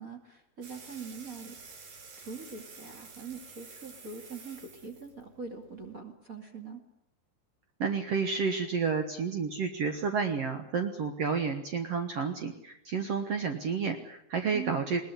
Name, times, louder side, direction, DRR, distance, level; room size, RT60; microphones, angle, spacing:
voice 1, 0.0-1.6 2.2-6.8 14.5-14.8, right 5 dB, 30° right, 6 dB, 1.8 m, -43 dB
sound 1, 0.6-6.0, right 4 dB, 55° right, 4.0 m, -50 dB
voice 2, 7.8-15.0, right 5 dB, 80° right, 6 dB, 1.4 m, -30 dB
21.0 x 20.5 x 10.0 m, 0.76 s
omnidirectional pair, 5.1 m